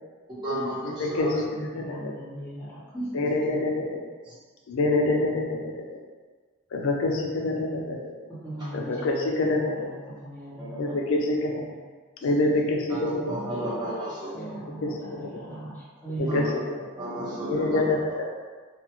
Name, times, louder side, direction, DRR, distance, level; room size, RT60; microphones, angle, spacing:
voice 1, 0.3-1.3 2.9-3.1 4.3-4.4 10.6-10.8 12.2-12.4 13.2-14.3 16.3-16.4 17.0-17.8, right 1 dB, 20° right, -12 dB, 1.0 m, -32 dB
voice 2, 0.8-2.1 3.1-4.0 4.7-6.0 6.7-8.1 8.7-9.9 10.8-11.7 12.2-13.3 14.8-14.9 15.2-15.3 16.2-16.6 17.5-18.3, left 2 dB, 85° left, 0 dB, 0.4 m, -26 dB
voice 3, 1.5-2.8 3.1-3.8 8.4-10.9 11.7-11.8 14.3-16.9, right 1 dB, 10° left, -10 dB, 0.9 m, -38 dB
2.4 x 2.3 x 2.9 m, 1.5 s
head